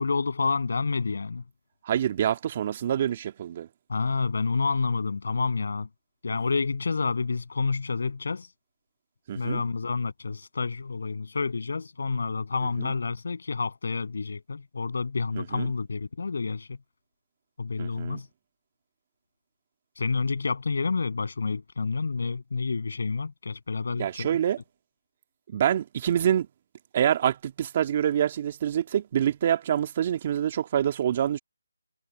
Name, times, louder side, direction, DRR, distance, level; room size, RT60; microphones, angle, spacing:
voice 1, 0.0-1.4 3.9-5.9 6.2-8.5 9.3-16.8 17.6-18.3 20.0-24.3, left 4 dB, 60° left, 7.9 m, -29 dB
voice 2, 1.8-3.7 9.3-9.6 12.8-12.9 15.4-15.7 17.8-18.2 24.0-24.6 25.5-26.5 26.9-31.4, right 10 dB, 30° right, 2.0 m, -26 dB
figure-of-eight pair, 165°, 0 cm